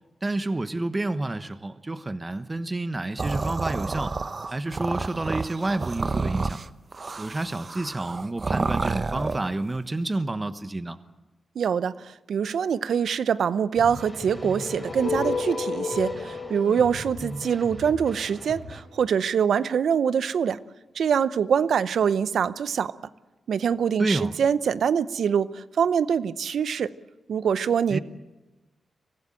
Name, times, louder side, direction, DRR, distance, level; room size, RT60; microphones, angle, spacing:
voice 1, 0.2-4.2 4.5-6.6 7.2-11.0 24.0-24.3 27.9-28.0, right 2 dB, 30° right, 11 dB, 1.2 m, -29 dB
sound 1, 3.2-9.5, right 4 dB, 45° right, 0.8 m, -30 dB
voice 2, 11.6-20.6 21.0-22.9 23.5-26.9 27.3-28.0, right 7 dB, 80° right, 16 dB, 0.7 m, -24 dB
sound 2, 13.8-18.8, equal, 5° left, 3.8 m, -40 dB
sound 3, 14.2-18.3, left 4 dB, 75° left, 4.3 m, -32 dB
24.5 x 15.5 x 9.1 m, 1.1 s
supercardioid pair, 50°, 0 cm